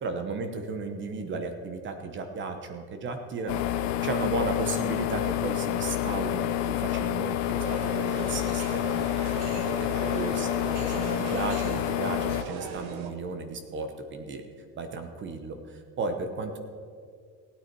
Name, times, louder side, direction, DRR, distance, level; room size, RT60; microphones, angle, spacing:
voice 1, 0.0-3.6 4.0-9.1 9.3-10.6 10.9-14.4 14.8-16.6, right 4 dB, 35° right, 7 dB, 1.1 m, -34 dB
sound 1, 3.5-12.4, left 13 dB, 85° left, 0.9 m, -28 dB
sound 2, 7.6-13.1, right 5 dB, 80° right, 1.3 m, -38 dB
16.5 x 9.5 x 4.7 m, 2.1 s
cardioid pair, 150°, 35 cm